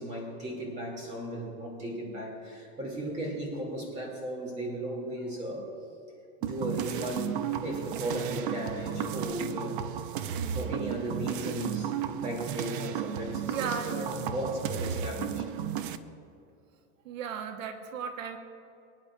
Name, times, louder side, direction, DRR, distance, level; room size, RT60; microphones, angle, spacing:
voice 1, 0.0-5.7 6.4-9.8 10.5-11.9 12.2-15.5, right 1 dB, 20° right, -1 dB, 2.7 m, -36 dB
sound 1, 6.4-16.0, right 9 dB, 45° right, 0.5 m, -34 dB
voice 2, 10.4-10.9 13.5-14.3 17.0-18.4, right 6 dB, 85° right, 5 dB, 1.3 m, -37 dB
24.5 x 9.7 x 2.5 m, 2.6 s
supercardioid pair, 175°, 39 cm